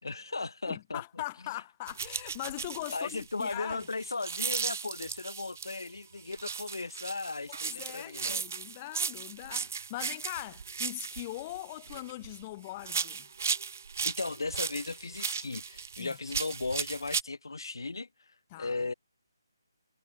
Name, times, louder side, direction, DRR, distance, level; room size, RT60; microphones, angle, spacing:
voice 1, 0.0-1.0 2.9-8.4 14.0-18.1 18.6-18.9, left 3 dB, 80° left, 4.0 m, -36 dB
voice 2, 0.7-3.8 7.5-13.3 16.0-16.1 18.5-18.8, left 18 dB, 15° left, 2.1 m, -41 dB
sound 1, 1.9-5.9 6.3-12.4 12.8-17.2, right 6 dB, 35° right, 2.3 m, -36 dB
hypercardioid pair, 175°, 2 cm